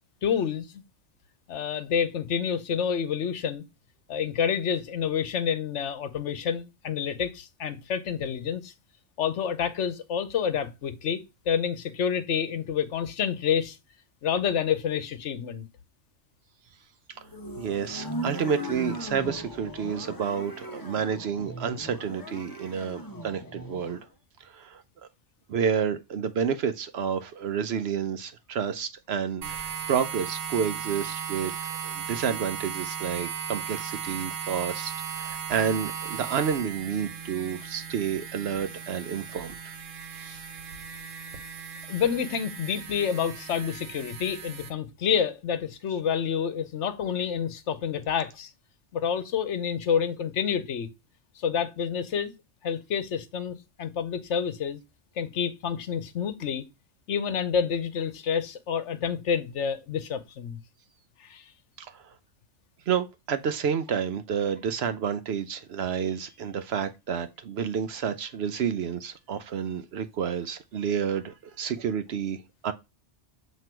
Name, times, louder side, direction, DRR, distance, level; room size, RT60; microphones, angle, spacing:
voice 1, 0.2-0.8 1.5-3.6 4.1-8.7 9.2-13.8 14.2-15.6 41.9-48.5 48.9-50.9 51.4-52.3 52.6-54.8 55.2-56.6 57.1-60.6 61.2-61.4, left 7 dB, 70° left, 1.1 m, -28 dB
sound 1, 17.2-24.1, equal, 20° left, 0.9 m, -38 dB
voice 2, 17.6-24.0 24.4-24.8 25.5-31.5 31.8-39.6 40.1-40.4 61.8-62.0 62.9-72.7, right 7 dB, 60° right, 0.8 m, -30 dB
sound 2, 29.4-44.7, right 8 dB, 90° right, 1.3 m, -37 dB
7.7 x 3.0 x 4.4 m
omnidirectional pair, 1.3 m